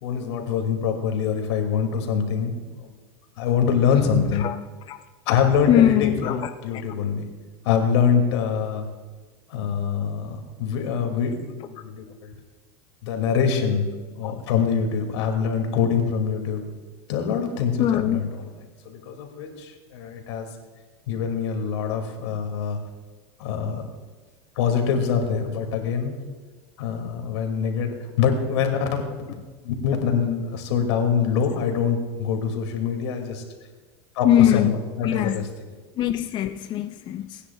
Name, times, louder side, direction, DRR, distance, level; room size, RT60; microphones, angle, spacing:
voice 1, 0.0-3.0 3.4-4.5 5.3-7.3 7.6-8.9 9.5-12.3 13.0-13.9 14.1-16.6 17.1-18.3 18.9-20.5 21.1-22.8 23.4-23.8 24.6-26.2 26.8-29.3 29.6-33.4 34.1-35.5, left 6 dB, 80° left, 4 dB, 2.3 m, -24 dB
voice 2, 5.7-6.8 14.2-14.3 17.8-18.2 34.2-34.7 35.0-35.4 36.0-37.4, left 11 dB, 35° left, 7 dB, 0.5 m, -21 dB
29.0 x 9.9 x 2.3 m, 1.3 s
supercardioid pair, 135°, 14 cm